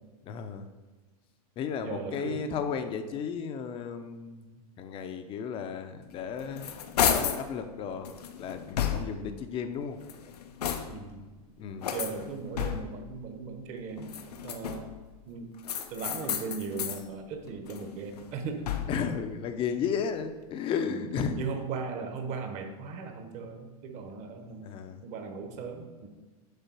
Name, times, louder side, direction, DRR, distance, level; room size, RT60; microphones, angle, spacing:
voice 1, 0.3-0.7 1.6-6.7 7.0-8.1 8.4-10.0 11.4-11.9 18.9-21.4 24.6-25.0, left 6 dB, 25° left, 8 dB, 0.6 m, -34 dB
voice 2, 1.8-2.5 9.0-9.4 10.9-11.2 11.9-14.1 14.4-14.9 15.3-15.5 15.9-18.7 20.8-21.1 21.3-24.7 25.0-26.1, right 4 dB, 35° right, 6 dB, 1.0 m, -38 dB
sound 1, 6.1-7.5 8.0-9.3 9.9-11.1 11.8-13.1 14.0-15.0 15.6-17.0 17.5-19.1, left 8 dB, 85° left, 0.8 m, -32 dB
6.7 x 3.7 x 6.1 m, 1.3 s
hypercardioid pair, 135°, 20 cm